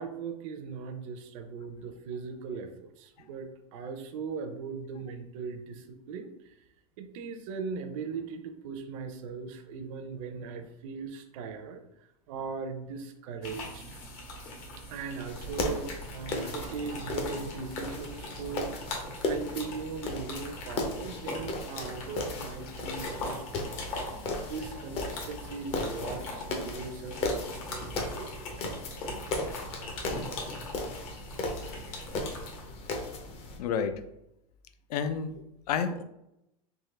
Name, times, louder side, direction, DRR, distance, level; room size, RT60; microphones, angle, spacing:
voice 1, 0.0-6.5 7.0-14.0 14.8-23.7 24.4-28.7, right 5 dB, 55° right, 6 dB, 0.5 m, -39 dB
sound 1, 13.4-32.6, left 1 dB, 60° left, 1.2 m, -41 dB
sound 2, 15.2-33.6, left 2 dB, 30° left, 0.6 m, -36 dB
voice 2, 33.6-34.0 34.9-36.0, left 6 dB, 85° left, 9 dB, 0.5 m, -30 dB
3.6 x 2.8 x 3.2 m, 0.85 s
supercardioid pair, 155°, 20 cm